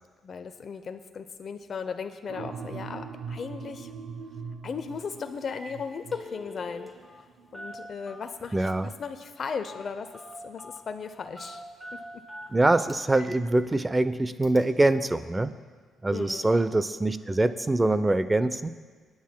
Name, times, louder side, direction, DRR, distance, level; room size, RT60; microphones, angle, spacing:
voice 1, 0.2-3.9 4.6-6.9 7.5-10.1 10.4-11.6 11.9-12.2 16.1-16.5, left 5 dB, 50° left, 8 dB, 0.6 m, -36 dB
sound 1, 2.3-8.8, right 5 dB, 70° right, 0.6 m, -42 dB
Telephone, 4.9-5.0 5.3-5.7 6.0-7.2 7.5-8.5 9.6-9.9 10.1-10.8 11.4-13.3 13.7-13.8 14.4-14.6, left 1 dB, ahead, 1.5 m, -43 dB
voice 2, 8.5-8.9 12.5-15.5 16.0-18.7, right 2 dB, 15° right, 13 dB, 0.5 m, -24 dB
25.0 x 9.5 x 2.2 m, 1.5 s
cardioid pair, 90°, 0 cm